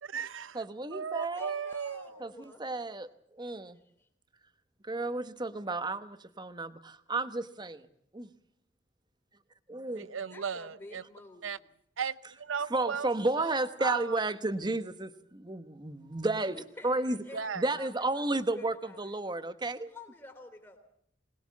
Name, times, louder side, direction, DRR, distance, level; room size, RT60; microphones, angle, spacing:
voice 1, 0.0-0.6 0.9-2.3 9.9-11.0 11.4-11.6 12.0-13.1 13.4-14.2 17.3-17.7, right 6 dB, 85° right, 16 dB, 0.8 m, -36 dB
voice 2, 0.5-1.5 2.2-2.3 2.6-3.1 3.3-3.8 4.8-7.9 8.1-8.3 9.7-10.1 12.7-16.6 16.8-17.2 17.6-19.9, right 2 dB, 20° right, 11 dB, 1.1 m, -32 dB
voice 3, 1.2-2.7 3.7-4.1 10.3-11.7 16.5-19.2 19.9-20.8, left 2 dB, 15° left, 3 dB, 3.1 m, -50 dB
21.0 x 20.0 x 7.3 m, 0.71 s
head